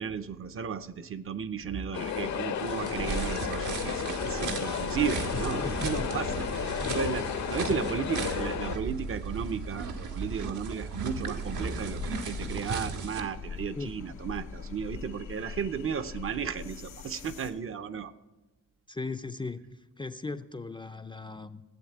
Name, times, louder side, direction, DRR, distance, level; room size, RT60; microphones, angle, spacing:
voice 1, 0.0-18.1, right 7 dB, 45° right, 11 dB, 0.6 m, -34 dB
sound 1, 1.9-8.8, left 7 dB, 70° left, 0.8 m, -33 dB
sound 2, 2.6-13.2, right 4 dB, 85° right, 1.6 m, -36 dB
voice 2, 5.3-5.9 6.8-7.0 13.7-13.9 18.9-21.6, left 3 dB, 15° left, 9 dB, 0.4 m, -38 dB
sound 3, 11.2-17.5, left 5 dB, 85° left, 2.1 m, -43 dB
15.5 x 8.0 x 8.7 m, 1.1 s
wide cardioid pair, 160°, 30 cm